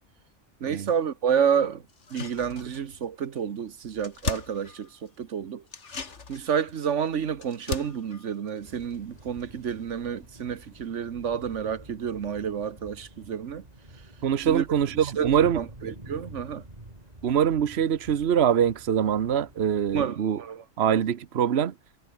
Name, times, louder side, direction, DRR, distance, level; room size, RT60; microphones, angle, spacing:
voice 1, 0.6-1.8 2.1-5.6 6.3-13.6 14.4-14.6 15.0-16.6 19.9-20.6, right 7 dB, 80° right, 1.4 m, -29 dB
sound 1, 1.9-3.1 3.4-3.5 3.7-5.2 5.7-9.4 9.7-9.8, left 4 dB, 70° left, 2.3 m, -38 dB
sound 2, 8.6-20.1, right 1 dB, 35° right, 5.0 m, -48 dB
voice 2, 14.2-15.6 17.2-20.4 20.8-21.7, right 8 dB, 60° right, 1.2 m, -23 dB
omnidirectional pair, 1.2 m